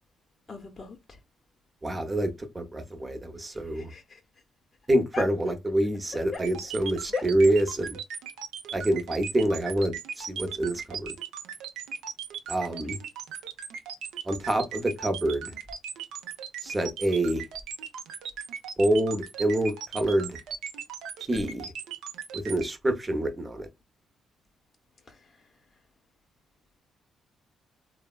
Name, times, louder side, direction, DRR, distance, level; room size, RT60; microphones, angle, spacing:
voice 1, 0.5-1.2 3.7-4.2 5.1-5.2 6.3-6.4 7.1-7.2 25.1-25.2, left 5 dB, 30° left, 0.7 m, -36 dB
voice 2, 1.8-3.9 4.9-8.0 8.7-11.1 12.5-13.0 14.3-15.5 16.6-17.4 18.8-20.4 21.3-21.7 22.3-23.7, right 1 dB, 20° right, 0.7 m, -26 dB
sound 1, 6.3-22.7, right 7 dB, 90° right, 0.5 m, -38 dB
3.3 x 2.0 x 2.2 m
cardioid pair, 90°, 0 cm